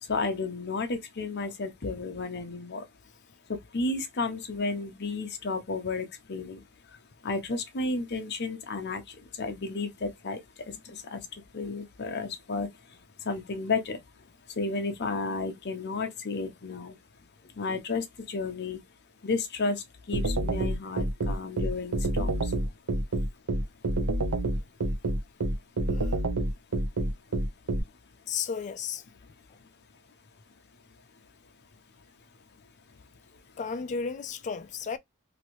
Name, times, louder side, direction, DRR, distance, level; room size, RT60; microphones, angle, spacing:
voice 1, 0.0-2.9 3.5-6.6 7.2-13.0 13.2-14.0 14.5-17.0 17.5-18.8 19.2-22.5, left 3 dB, 50° left, 0.7 m, -32 dB
sound 1, 20.1-27.8, right 1 dB, 75° right, 0.8 m, -27 dB
voice 2, 25.9-26.2 28.3-29.0 33.6-35.0, left 6 dB, 35° left, 0.3 m, -34 dB
3.0 x 2.6 x 2.9 m
head